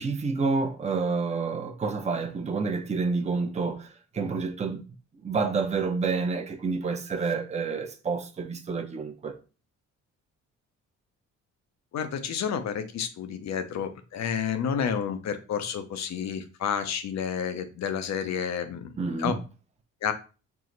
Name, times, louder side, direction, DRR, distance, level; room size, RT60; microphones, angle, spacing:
voice 1, 0.0-4.8 5.2-9.3 19.0-19.4, right 4 dB, 20° right, 0.6 m, -29 dB
voice 2, 11.9-18.9 19.2-19.3 20.0-20.1, left 7 dB, 65° left, 0.7 m, -30 dB
4.7 x 2.1 x 3.8 m
cardioid pair, 90°, 30 cm